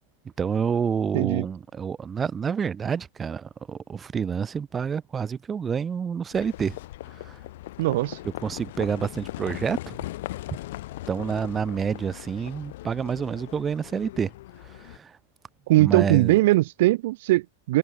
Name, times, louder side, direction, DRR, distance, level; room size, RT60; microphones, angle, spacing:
voice 1, 0.4-6.8 7.2-7.4 8.4-10.0 11.1-14.3 14.6-15.1 15.8-16.4, right 6 dB, 20° right, 4.6 m, -28 dB
voice 2, 1.1-1.4 7.8-8.2 15.7-17.8, right 18 dB, 60° right, 1.7 m, -20 dB
Livestock farm animals working animals, 6.3-15.0, left 16 dB, 60° left, 6.8 m, -39 dB
hypercardioid pair, 105°, 0 cm